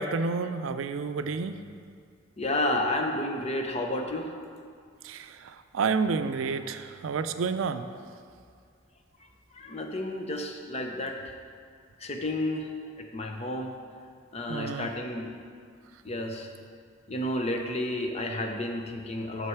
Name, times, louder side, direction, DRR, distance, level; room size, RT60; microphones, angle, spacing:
voice 1, 0.0-1.6 5.0-7.9 14.5-14.9, right 4 dB, 90° right, 10 dB, 0.4 m, -30 dB
voice 2, 2.4-4.3 9.5-11.3 12.0-13.7 14.3-15.3 16.0-16.5 17.1-19.5, left 1 dB, 35° left, 3 dB, 0.7 m, -31 dB
6.7 x 6.4 x 4.6 m, 2.2 s
head